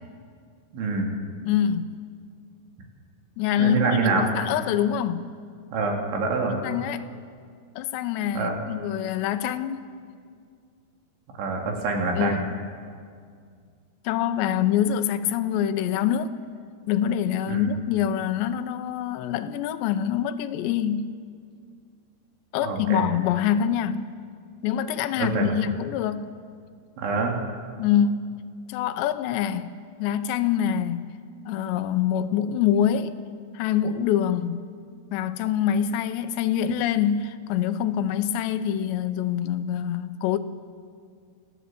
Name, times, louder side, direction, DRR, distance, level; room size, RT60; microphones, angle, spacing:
voice 1, 0.7-1.1 3.6-4.3 5.7-6.6 8.3-8.6 11.4-12.4 17.5-17.7 22.6-23.1 25.2-25.5 27.0-27.3, right 4 dB, 90° right, 4.9 m, -25 dB
voice 2, 1.4-2.0 3.4-5.3 6.6-7.1 7.8-9.9 12.2-12.6 14.0-16.4 16.9-21.1 22.5-24.0 24.6-26.2 27.8-28.4 28.7-31.1 31.5-33.2 33.5-34.7 35.1-40.4, left 9 dB, 80° left, 2.9 m, -25 dB
26.5 x 15.5 x 7.6 m
omnidirectional pair, 5.2 m